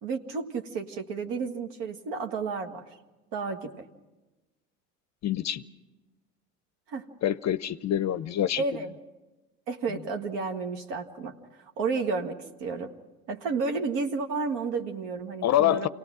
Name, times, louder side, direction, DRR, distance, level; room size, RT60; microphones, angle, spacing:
voice 1, 0.0-2.8 3.3-3.8 6.9-7.1 8.6-8.9 9.7-11.3 11.8-12.9 13.3-15.9, right 4 dB, 65° right, 4 dB, 1.7 m, -31 dB
voice 2, 5.2-5.6 7.2-8.6 15.4-15.9, left 12 dB, 35° left, 15 dB, 0.6 m, -25 dB
27.0 x 18.5 x 6.1 m, 1.1 s
hypercardioid pair, 75°, 46 cm